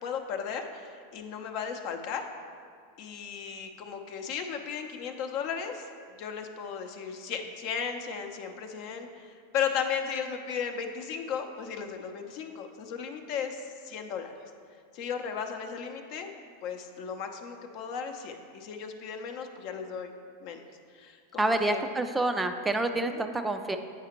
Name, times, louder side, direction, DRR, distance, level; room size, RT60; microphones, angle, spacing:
voice 1, 0.0-2.2 3.0-5.9 6.2-14.3 14.9-16.3 16.6-20.1 20.4-20.6 20.9-21.9 23.0-23.2, left 7 dB, 55° left, 5 dB, 0.6 m, -35 dB
voice 2, 21.4-23.8, right 2 dB, 10° right, 7 dB, 0.3 m, -28 dB
8.1 x 4.9 x 2.9 m, 2.1 s
hypercardioid pair, 100°, 0 cm